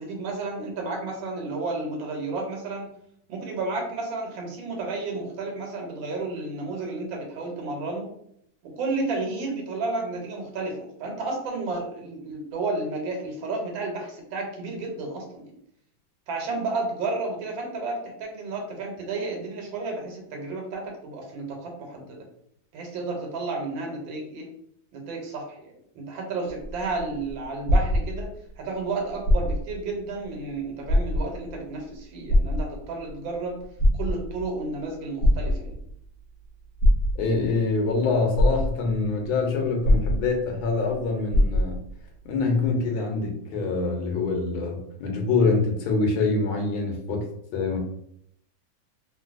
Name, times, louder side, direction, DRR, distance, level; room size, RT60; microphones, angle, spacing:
voice 1, 0.0-2.9 3.3-8.1 8.6-15.5 16.3-22.2 22.7-24.5 24.9-28.3 28.6-33.6 34.0-35.8, right 3 dB, 75° right, 1 dB, 1.5 m, -32 dB
sound 1, 26.5-28.5 29.1-29.8 30.2-30.3 30.8-31.5 32.3-33.1 33.6-34.5 35.2-36.0 36.8-37.5 38.0-38.1 38.4-39.1 39.8-40.6 40.9-41.0 41.3-41.9 42.7-42.8, left 1 dB, 60° left, 1.1 m, -22 dB
voice 2, 37.2-41.8 42.2-47.2 47.5-47.8, left 3 dB, 90° left, 2 dB, 1.5 m, -25 dB
3.2 x 2.5 x 2.4 m, 0.71 s
omnidirectional pair, 2.2 m